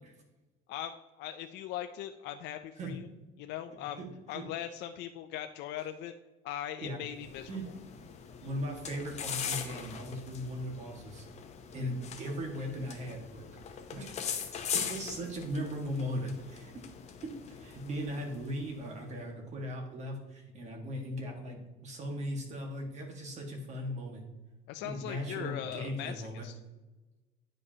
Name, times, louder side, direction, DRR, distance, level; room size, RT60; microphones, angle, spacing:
voice 1, 0.7-3.1 3.4-6.1 6.4-7.7 24.7-26.6, left 11 dB, 70° left, 7 dB, 0.4 m, -40 dB
sound 1, 7.1-18.9, left 7 dB, 35° left, 0.7 m, -41 dB
voice 2, 8.4-11.3 11.7-13.5 13.9-14.1 14.7-16.8 17.2-24.2 24.8-26.5, equal, 40° right, 1 dB, 1.6 m, -38 dB
9.6 x 5.1 x 2.8 m, 1.1 s
cardioid pair, 145°, 18 cm